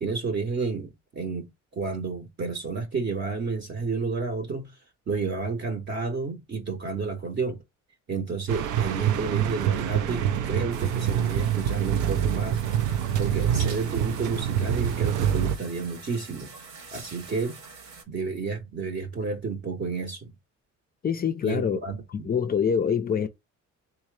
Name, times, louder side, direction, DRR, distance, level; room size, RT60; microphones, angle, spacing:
voice 1, 0.0-4.8 5.1-7.6 8.1-12.6 13.2-16.5 16.9-17.6 18.1-20.3 21.4-22.3, right 4 dB, 40° right, 0.7 m, -31 dB
sound 1, 8.5-15.6, right 9 dB, 80° right, 0.5 m, -25 dB
sound 2, 10.7-18.0, right 4 dB, 60° right, 1.1 m, -45 dB
voice 2, 21.0-21.8 22.2-23.3, left 7 dB, 30° left, 0.4 m, -25 dB
3.7 x 2.7 x 3.1 m
cardioid pair, 90°, 30 cm